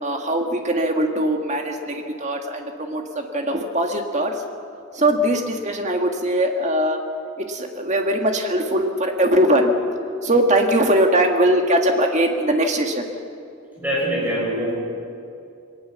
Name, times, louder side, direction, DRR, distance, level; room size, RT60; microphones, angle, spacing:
voice 1, 0.0-4.4 4.9-7.0 7.4-9.7 10.2-13.0, right 1 dB, 35° right, 3 dB, 1.9 m, -21 dB
voice 2, 13.8-14.7, equal, 10° right, -4 dB, 6.3 m, -23 dB
21.5 x 19.0 x 7.2 m, 2.6 s
head